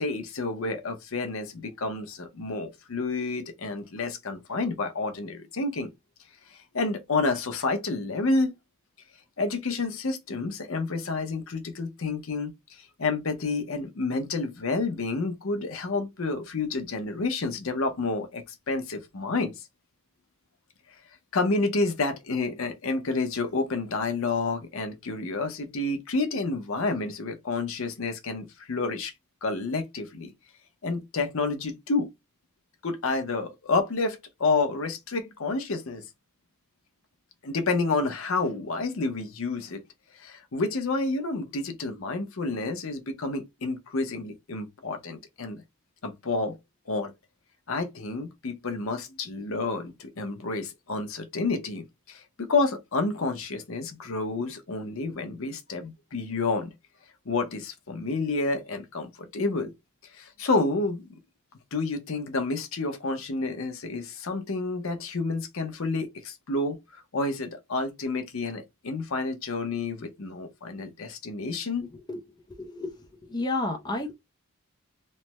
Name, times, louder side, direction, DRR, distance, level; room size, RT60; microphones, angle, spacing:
voice 1, 0.0-5.9 6.5-8.5 9.4-19.7 21.3-29.1 29.4-30.3 30.8-32.1 32.8-36.0 37.4-39.8 40.1-45.6 46.0-46.6 46.9-47.1 47.7-56.7 57.3-59.7 60.0-61.1 61.7-71.9, left 3 dB, 65° left, 0.7 m, -29 dB
voice 2, 72.6-74.1, left 2 dB, 20° left, 0.5 m, -31 dB
3.2 x 2.1 x 2.9 m
head